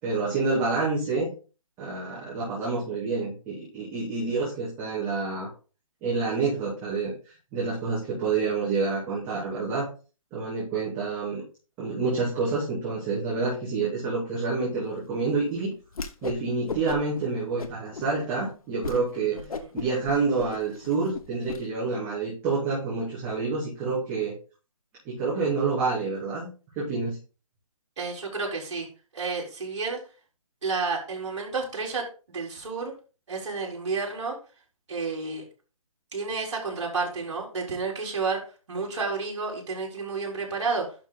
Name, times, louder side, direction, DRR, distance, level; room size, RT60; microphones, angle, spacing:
voice 1, 0.0-1.3 1.8-5.5 6.0-7.1 7.5-9.9 10.3-11.4 11.8-15.7 16.2-19.4 19.7-24.3 25.0-26.5 26.7-27.2, right 4 dB, 10° right, -9 dB, 2.8 m, -28 dB
Whoosh swoosh swish, 15.9-16.4 16.7-17.2 17.6-18.1 18.4-18.5 18.8-19.0 19.3-21.6, left 4 dB, 80° left, 1.3 m, -35 dB
voice 2, 19.3-19.7 28.0-28.9 29.1-30.0 30.6-32.9 33.3-34.4 34.9-35.4 36.1-38.4 38.7-40.9, right 4 dB, 55° right, -1 dB, 4.2 m, -31 dB
11.5 x 4.8 x 4.1 m, 0.35 s
hypercardioid pair, 170°, 18 cm